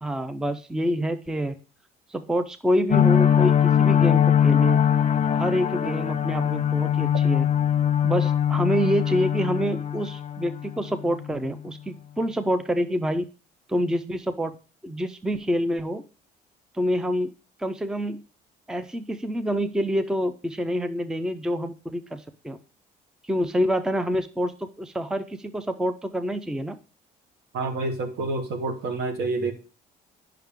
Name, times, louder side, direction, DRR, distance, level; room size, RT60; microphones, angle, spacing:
voice 1, 0.0-1.5 2.1-4.8 5.3-7.5 8.0-13.2 13.7-14.6 14.8-16.0 16.7-17.3 17.6-18.2 18.7-22.6 23.2-26.8, equal, 5° right, 10 dB, 0.4 m, -27 dB
sound 1, 2.9-11.3, left 9 dB, 45° left, 0.7 m, -21 dB
voice 2, 27.5-29.5, right 3 dB, 75° right, 6 dB, 1.5 m, -28 dB
8.9 x 5.7 x 3.6 m, 0.35 s
cardioid pair, 110°, 17 cm